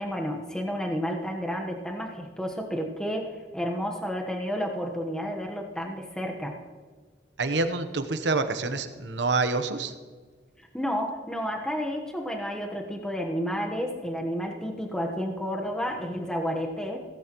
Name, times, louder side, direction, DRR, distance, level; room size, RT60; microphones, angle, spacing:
voice 1, 0.0-6.5 10.7-17.0, equal, 5° left, 1 dB, 1.1 m, -31 dB
voice 2, 7.4-9.9, right 3 dB, 80° right, 9 dB, 1.0 m, -27 dB
16.5 x 15.0 x 3.0 m, 1.5 s
head